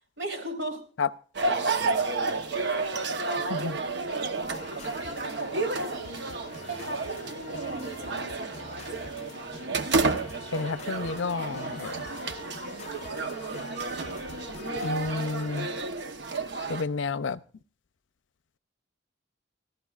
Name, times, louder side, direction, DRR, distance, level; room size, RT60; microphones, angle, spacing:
voice 1, 0.2-0.8 1.5-1.7 2.3-2.4 2.9-6.3 6.6-8.5, right 2 dB, 80° right, 4.0 m, -38 dB
sound 1, 1.3-16.8, right 3 dB, 65° right, 1.0 m, -31 dB
sound 2, 4.5-15.8, left 4 dB, 35° left, 0.8 m, -46 dB
voice 2, 10.5-12.0 14.8-15.7 16.7-17.4, left 4 dB, 80° left, 0.6 m, -30 dB
27.5 x 14.0 x 2.4 m
head